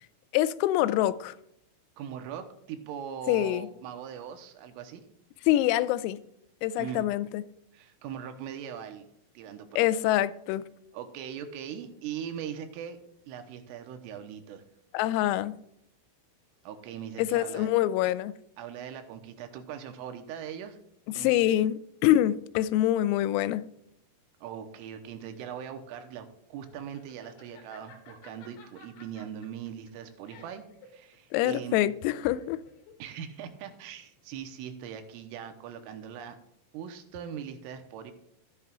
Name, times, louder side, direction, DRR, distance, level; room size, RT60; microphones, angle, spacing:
voice 1, 0.3-1.4 3.3-3.7 5.5-6.2 6.6-7.4 9.8-10.6 14.9-15.6 17.2-18.3 21.2-23.7 31.3-32.6, left 13 dB, 90° left, 3.3 m, -25 dB
voice 2, 2.0-5.0 6.8-7.0 7.7-9.1 9.3-9.9 10.9-13.0 13.3-14.6 16.6-17.7 18.6-20.8 21.1-21.5 24.4-31.8 33.0-36.4 36.7-38.1, right 8 dB, 85° right, 3.3 m, -40 dB
Laughter, 25.3-34.4, left 4 dB, 65° left, 4.1 m, -55 dB
14.0 x 11.5 x 2.4 m
omnidirectional pair, 5.9 m